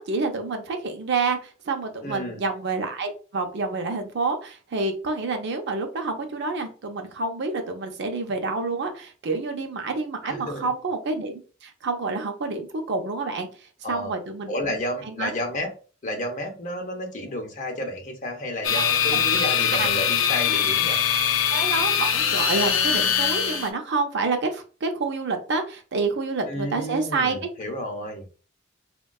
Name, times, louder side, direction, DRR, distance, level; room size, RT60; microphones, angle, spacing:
voice 1, 0.0-13.5 13.9-14.8 15.0-15.4 18.7-18.8 19.1-19.2 19.8-19.9 20.5-20.6 21.5-27.4, right 3 dB, 55° right, 6 dB, 0.5 m, -28 dB
voice 2, 2.0-2.4 10.2-10.7 13.8-14.1 14.5-15.7 16.0-21.0 26.5-28.3, left 1 dB, 40° left, 2 dB, 0.7 m, -31 dB
sound 1, 18.6-23.7, left 8 dB, 85° left, 0.5 m, -22 dB
3.5 x 2.2 x 2.3 m, 0.36 s
head